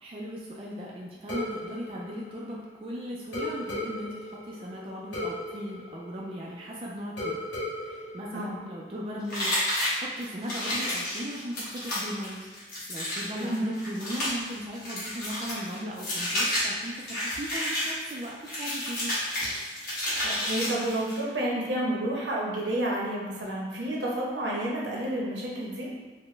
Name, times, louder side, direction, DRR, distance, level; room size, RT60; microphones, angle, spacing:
voice 1, 0.0-7.4 7.8-9.6 9.9-12.4 12.9-19.2, equal, 30° right, -4 dB, 0.4 m, -37 dB
sound 1, 1.3-2.9 3.3-6.7 7.2-9.1, left 1 dB, 80° left, 1.1 m, -37 dB
sound 2, 9.3-21.2, left 1 dB, 50° left, 1.3 m, -31 dB
voice 2, 13.4-13.8 20.2-25.9, right 1 dB, 80° right, -4 dB, 0.8 m, -30 dB
4.1 x 2.1 x 3.2 m, 1.4 s
head